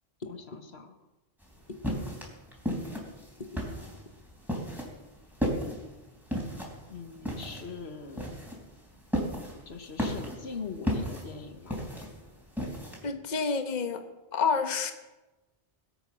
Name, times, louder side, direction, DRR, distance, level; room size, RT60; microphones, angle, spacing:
voice 1, 0.3-1.0 6.9-8.3 9.7-11.8, left 5 dB, 80° left, 6 dB, 1.5 m, -42 dB
sound 1, 1.4-13.1, equal, ahead, 3.6 m, -34 dB
voice 2, 13.0-14.0 14.3-14.9, left 5 dB, 45° left, 7 dB, 1.1 m, -28 dB
20.5 x 8.3 x 6.1 m, 1.1 s
omnidirectional pair, 1.1 m